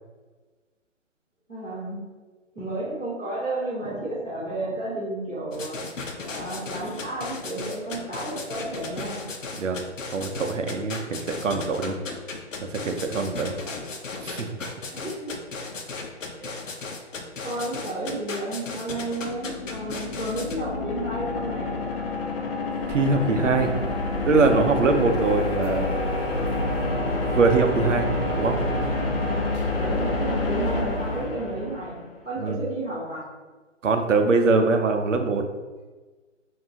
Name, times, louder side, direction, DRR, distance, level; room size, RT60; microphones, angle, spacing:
voice 1, 1.5-2.0 2.5-5.8 6.3-9.2 14.9-15.3 16.4-16.5 17.4-21.9 23.3-23.6 24.0-24.1 29.7-32.0 32.2-33.2, right 2 dB, 5° left, -22 dB, 0.4 m, -32 dB
sound 1, 5.5-20.6, left 3 dB, 80° left, 0.9 m, -35 dB
voice 2, 10.1-12.0 12.7-13.6 14.2-14.5 22.9-23.7 24.3-25.9 27.3-28.1 28.4-28.5 32.4-32.6 33.8-35.4, right 4 dB, 75° right, 5 dB, 0.8 m, -22 dB
sound 2, 19.1-32.1, left 2 dB, 50° left, 0.8 m, -28 dB
sound 3, 22.7-31.3, right 3 dB, 50° right, 1.3 m, -41 dB
5.4 x 2.8 x 2.9 m, 1.3 s
hypercardioid pair, 150°, 38 cm